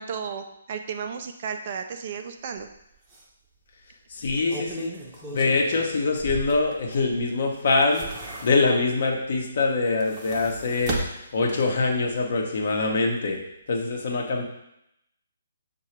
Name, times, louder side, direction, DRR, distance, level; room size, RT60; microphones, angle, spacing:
voice 1, 0.0-2.7, right 6 dB, 40° right, 6 dB, 0.3 m, -34 dB
sound 1, 2.6-2.7 3.1-3.2 4.2-7.2 7.6-8.9 9.8-11.9 12.3-12.4, right 2 dB, 20° right, 0.7 m, -36 dB
voice 2, 4.1-4.9 5.3-8.1 8.4-13.4 13.7-14.4, left 3 dB, 50° left, 1 dB, 0.8 m, -24 dB
6.3 x 2.3 x 3.1 m, 0.81 s
figure-of-eight pair, 135°, 0 cm